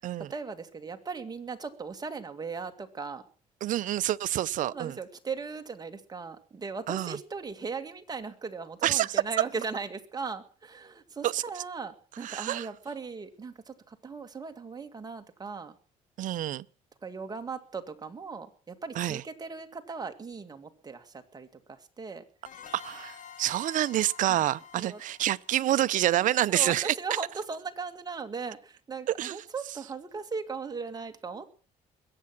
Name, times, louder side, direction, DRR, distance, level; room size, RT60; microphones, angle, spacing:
voice 1, 0.3-3.2 4.6-15.7 17.0-22.2 24.3-24.4 24.8-25.0 26.5-31.5, right 5 dB, 25° right, 2.2 m, -38 dB
voice 2, 3.6-5.0 6.9-7.2 8.8-9.2 11.2-11.4 12.2-12.7 16.2-16.6 19.0-19.2 22.7-26.9 29.2-29.4, right 13 dB, 65° right, 0.7 m, -27 dB
sound 1, 22.4-27.0, left 8 dB, 60° left, 3.3 m, -50 dB
21.5 x 8.8 x 6.0 m
cardioid pair, 90°, 15 cm